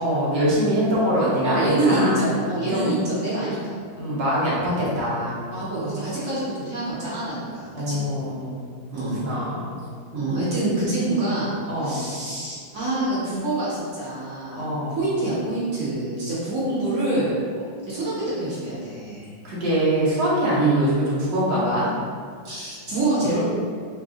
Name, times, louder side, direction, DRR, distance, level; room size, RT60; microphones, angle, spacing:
voice 1, 0.0-2.9 4.0-5.4 7.7-9.9 11.7-12.1 14.6-15.0 19.4-21.9, equal, 70° right, -7 dB, 1.7 m, -24 dB
voice 2, 1.4-3.8 5.5-8.2 8.9-9.3 10.1-17.4 17.9-19.3 20.6-20.8 22.4-23.4, right 2 dB, 45° right, -10 dB, 1.7 m, -26 dB
4.1 x 2.3 x 3.7 m, 2.1 s
omnidirectional pair, 2.1 m